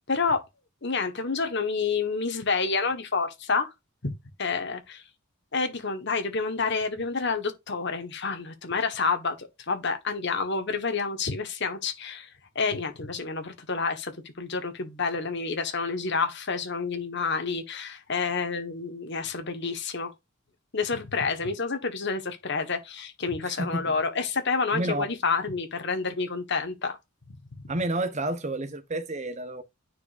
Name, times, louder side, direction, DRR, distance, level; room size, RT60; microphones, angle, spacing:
voice 1, 0.1-0.4 0.8-3.7 4.0-4.1 4.4-5.0 5.5-12.3 12.5-20.1 20.7-27.0, left 4 dB, 55° left, 1.4 m, -29 dB
voice 2, 23.4-23.9 24.7-25.1 27.7-29.6, right 2 dB, 35° right, 0.9 m, -30 dB
9.5 x 4.9 x 2.6 m
head